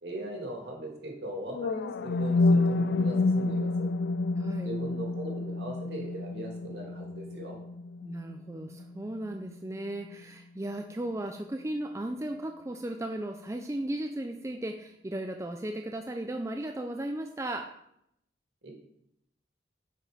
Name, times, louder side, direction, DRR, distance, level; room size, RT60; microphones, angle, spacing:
voice 1, 0.0-3.9 4.6-7.6 18.6-18.7, right 1 dB, 65° right, 0 dB, 2.4 m, -39 dB
sound 1, 1.5-9.5, left 3 dB, 65° left, 0.3 m, -29 dB
voice 2, 4.4-4.7 8.0-17.7, right 1 dB, 15° right, 4 dB, 0.4 m, -36 dB
8.5 x 5.1 x 5.1 m, 0.76 s
head